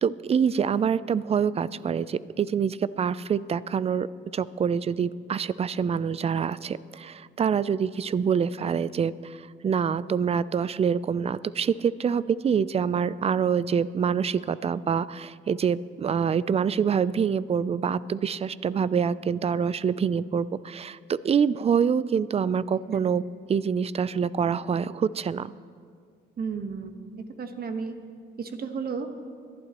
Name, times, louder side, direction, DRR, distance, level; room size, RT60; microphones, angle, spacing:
voice 1, 0.0-4.1 4.3-23.2 23.5-25.5, right 7 dB, 30° right, 17 dB, 0.4 m, -26 dB
voice 2, 26.4-26.9 27.4-27.9 28.4-29.1, right 5 dB, 50° right, 6 dB, 1.3 m, -32 dB
22.0 x 11.5 x 3.0 m, 2.1 s
cardioid pair, 90°, 20 cm